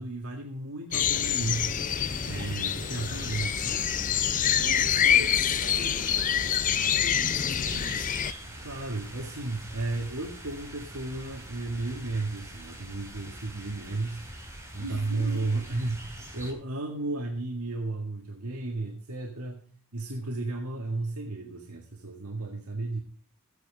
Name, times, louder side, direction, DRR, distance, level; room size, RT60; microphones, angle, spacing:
voice 1, 0.0-1.8 2.2-3.9 8.6-14.2 14.7-23.0, right 2 dB, 75° right, 2 dB, 1.9 m, -33 dB
sound 1, 0.9-8.3, left 9 dB, 35° left, 0.5 m, -26 dB
sound 2, 1.1-16.5, right 1 dB, 15° right, 3.6 m, -43 dB
voice 2, 4.4-8.1 14.8-15.4, right 2 dB, 55° right, 3 dB, 3.7 m, -42 dB
15.5 x 9.2 x 5.0 m, 0.43 s
head